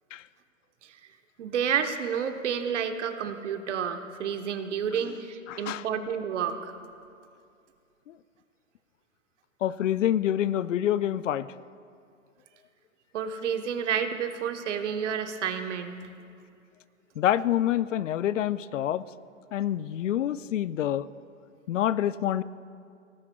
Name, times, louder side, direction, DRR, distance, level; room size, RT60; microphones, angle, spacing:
voice 1, 1.4-6.7 13.1-16.0, right 7 dB, 65° right, 7 dB, 1.1 m, -30 dB
voice 2, 5.5-5.8 9.6-11.5 17.2-19.0 19.5-21.1 21.7-22.4, left 11 dB, 70° left, 17 dB, 0.5 m, -26 dB
19.0 x 16.5 x 2.3 m, 2.3 s
hypercardioid pair, 125°, 39 cm